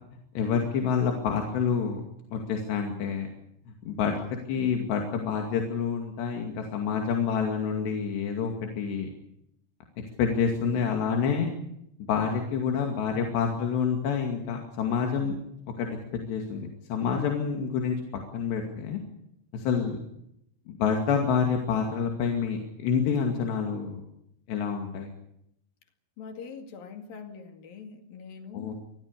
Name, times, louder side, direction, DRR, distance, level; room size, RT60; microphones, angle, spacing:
voice 1, 0.4-2.0 2.3-3.3 3.9-9.1 10.2-11.5 12.1-15.4 15.8-18.0 18.3-19.0 19.5-20.0 20.7-24.0 24.5-25.1 28.5-28.7, left 6 dB, 85° left, 2 dB, 4.5 m, -28 dB
voice 2, 26.2-28.7, left 5 dB, 60° left, 6 dB, 3.8 m, -43 dB
26.5 x 20.5 x 6.8 m, 0.77 s
omnidirectional pair, 4.8 m